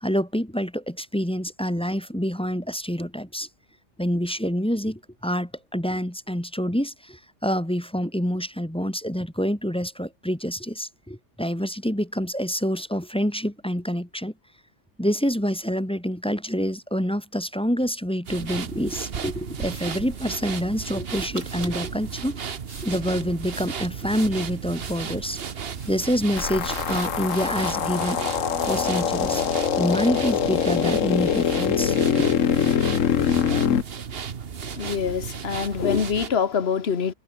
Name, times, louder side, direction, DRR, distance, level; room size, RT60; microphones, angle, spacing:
voice 1, 0.0-3.5 4.0-14.3 15.0-22.4 22.8-25.4 25.9-29.4 29.8-32.4, equal, 5° left, 1.3 m, -27 dB
sound 1, 18.3-36.3, right 7 dB, 50° right, 1.3 m, -34 dB
sound 2, 19.7-20.0 21.1-21.8 22.4-25.2 25.7-26.5 27.0-27.1 27.3-28.2 28.6-29.1, right 3 dB, 75° right, 4.1 m, -45 dB
sound 3, 26.4-33.8, left 8 dB, 75° left, 1.5 m, -23 dB
voice 2, 34.6-37.1, left 6 dB, 55° left, 1.6 m, -25 dB
omnidirectional pair, 1.3 m